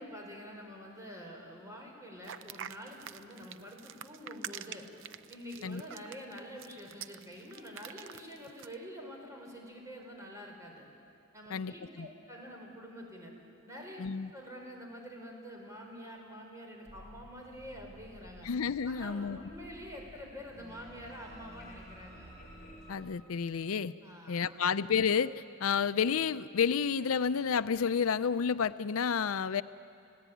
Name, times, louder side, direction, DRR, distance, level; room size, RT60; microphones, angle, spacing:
voice 1, 0.0-4.9 5.3-10.9 11.3-13.3 13.7-14.0 14.3-18.5 18.8-22.3 24.0-24.6, equal, 15° right, 0 dB, 4.7 m, -47 dB
sound 1, 2.2-8.7, right 9 dB, 60° right, 0.6 m, -46 dB
voice 2, 11.5-12.1 14.0-14.3 18.4-19.4 22.9-23.9 24.3-29.6, left 6 dB, 80° left, 14 dB, 0.5 m, -30 dB
sound 2, 16.9-23.0, equal, 45° left, 6.6 m, -53 dB
30.0 x 16.5 x 9.2 m, 2.6 s
head